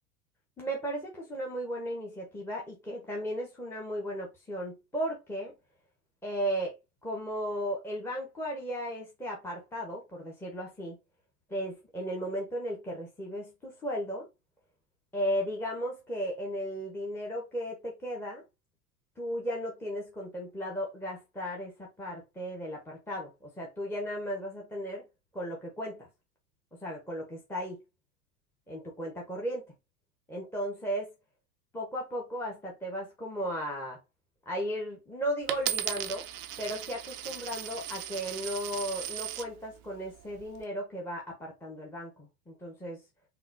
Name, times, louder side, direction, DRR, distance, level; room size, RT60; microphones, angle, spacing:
voice 1, 0.6-5.5 6.2-6.7 7.0-11.0 11.5-14.3 15.1-18.4 19.2-25.1 25.3-26.1 26.8-27.8 28.7-29.7 30.3-31.1 31.7-34.0 34.5-36.2 36.6-43.0, equal, 5° left, 0.9 m, -35 dB
Coin (dropping), 35.5-39.5 40.2-40.6, right 11 dB, 40° right, 0.4 m, -36 dB
3.9 x 2.5 x 2.5 m
hypercardioid pair, 90°, 47 cm